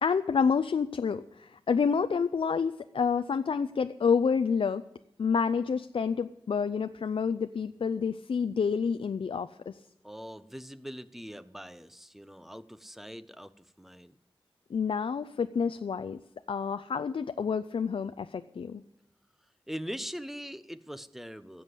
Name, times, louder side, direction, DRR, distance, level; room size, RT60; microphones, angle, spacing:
voice 1, 0.0-4.8 5.2-9.8 14.7-16.2 16.5-18.8, left 6 dB, 75° left, 10 dB, 0.5 m, -28 dB
voice 2, 10.0-14.2 19.7-21.6, equal, 5° right, 13 dB, 0.8 m, -42 dB
16.0 x 7.9 x 8.3 m, 0.80 s
wide cardioid pair, 70°, 9 cm